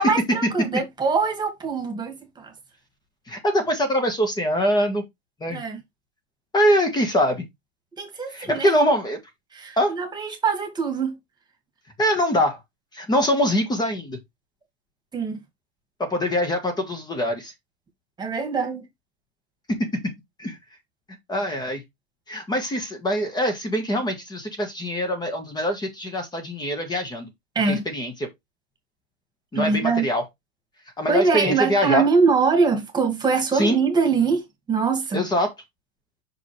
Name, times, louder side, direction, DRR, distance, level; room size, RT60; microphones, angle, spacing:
voice 1, 0.0-2.5 5.5-5.8 8.0-8.7 9.5-11.2 15.1-15.4 18.2-18.8 27.6-27.8 29.6-30.1 31.1-34.4 34.7-35.2, right 4 dB, 10° right, 1.9 m, -23 dB
voice 2, 3.3-5.0 5.4-5.6 6.5-7.4 8.3-9.2 9.8-9.9 12.0-12.6 12.9-14.2 16.0-17.5 19.7-19.9 20.4-20.6 21.3-21.8 22.3-27.3 27.7-28.3 29.5-30.2 31.0-32.0 33.5-33.8 35.1-35.5, equal, 10° left, 1.4 m, -23 dB
6.0 x 5.3 x 3.2 m
supercardioid pair, 150°, 34 cm